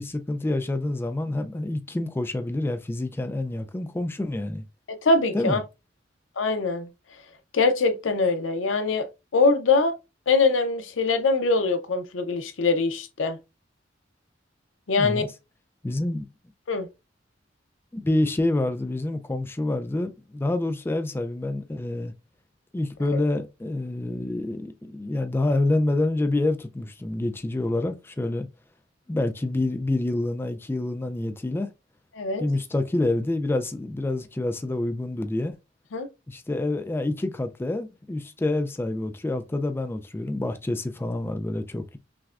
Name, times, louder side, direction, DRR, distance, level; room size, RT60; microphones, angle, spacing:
voice 1, 0.0-4.6 5.3-5.6 15.0-15.2 15.8-16.3 17.9-22.1 22.7-28.5 29.1-31.7 32.4-35.5 36.3-42.0, left 2 dB, 10° left, 0.3 m, -27 dB
voice 2, 4.9-5.6 6.4-6.9 7.5-9.9 10.3-13.4 14.9-15.2 16.7-16.9 23.1-23.2 32.1-32.4 35.9-36.1, left 3 dB, 85° left, 0.6 m, -23 dB
5.8 x 2.1 x 2.4 m
head